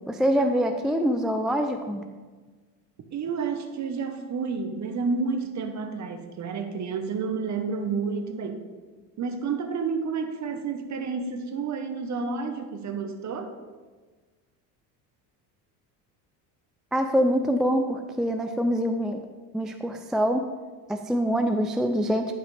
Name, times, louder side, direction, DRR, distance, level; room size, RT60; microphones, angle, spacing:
voice 1, 0.1-2.0 16.9-19.2 19.5-20.4 20.9-22.3, equal, ahead, 5 dB, 0.3 m, -25 dB
voice 2, 3.1-8.6 9.2-13.5, right 5 dB, 40° right, 7 dB, 1.1 m, -30 dB
10.5 x 5.9 x 3.3 m, 1.4 s
supercardioid pair, 95°, 42 cm